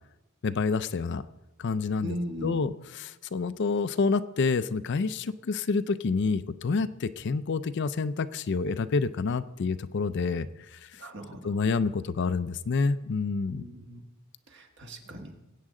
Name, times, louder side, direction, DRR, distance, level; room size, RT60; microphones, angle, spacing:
voice 1, 0.4-1.2 1.6-2.1 2.4-10.5 11.4-13.6, left 4 dB, 55° left, 13 dB, 0.4 m, -28 dB
voice 2, 2.0-2.7 11.0-11.6 13.5-14.0 14.5-15.4, right 1 dB, 55° right, 3 dB, 1.5 m, -39 dB
21.0 x 8.5 x 3.8 m, 0.99 s
head